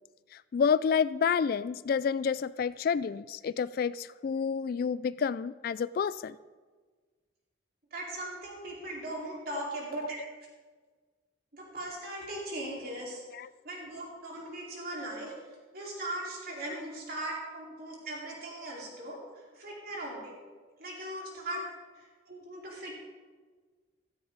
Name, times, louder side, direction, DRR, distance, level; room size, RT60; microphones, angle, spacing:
voice 1, 0.3-6.4 13.3-13.5 21.5-21.7, left 6 dB, 50° left, 18 dB, 0.3 m, -29 dB
voice 2, 7.9-10.2 11.5-13.2 13.6-15.3 15.7-19.2 19.6-20.3 20.8-21.6 22.3-23.0, right 1 dB, 55° right, -3 dB, 4.3 m, -39 dB
15.5 x 14.0 x 4.0 m, 1.4 s
head